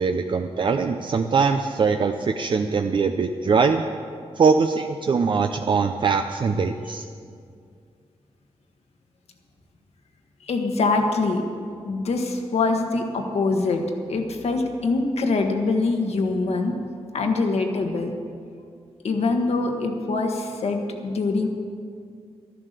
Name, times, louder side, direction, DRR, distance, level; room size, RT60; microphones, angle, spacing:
voice 1, 0.0-3.8 4.4-7.0, right 5 dB, 50° right, 6 dB, 0.5 m, -22 dB
voice 2, 10.4-11.4 11.8-13.8 14.1-16.8 17.1-18.1 19.0-21.5, left 3 dB, 75° left, 4 dB, 1.5 m, -24 dB
13.0 x 11.0 x 6.7 m, 2.2 s
wide cardioid pair, 130°, 11 cm